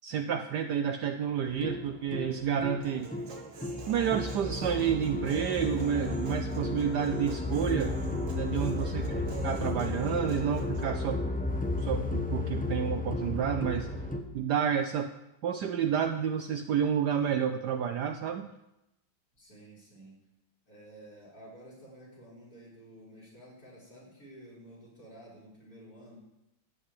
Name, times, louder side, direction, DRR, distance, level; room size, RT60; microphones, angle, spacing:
voice 1, 0.0-3.1 3.9-7.9 8.3-11.2 11.8-13.9 14.3-15.1 15.4-18.5, right 8 dB, 70° right, 8 dB, 1.1 m, -30 dB
sound 1, 1.5-14.2, left 2 dB, 10° left, 0.4 m, -33 dB
Human voice, 2.8-10.8, right 3 dB, 45° right, 1.5 m, -47 dB
voice 2, 8.9-9.4 19.3-20.2 20.7-26.2, equal, 45° left, -6 dB, 5.4 m, -51 dB
14.5 x 5.4 x 8.5 m, 0.88 s
omnidirectional pair, 2.2 m